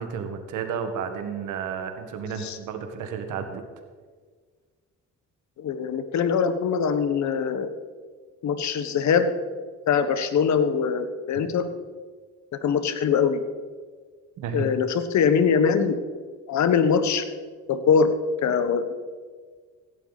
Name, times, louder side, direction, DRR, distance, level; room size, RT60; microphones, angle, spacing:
voice 1, 0.0-3.6 11.4-11.5 14.4-14.7, right 6 dB, 85° right, 6 dB, 1.9 m, -32 dB
voice 2, 5.6-7.7 8.4-9.3 9.9-11.7 12.6-13.4 14.5-16.0 16.5-17.2 17.7-18.1 18.4-18.9, left 6 dB, 70° left, 10 dB, 1.5 m, -22 dB
16.5 x 11.5 x 4.2 m, 1.5 s
cardioid pair, 90°, 30 cm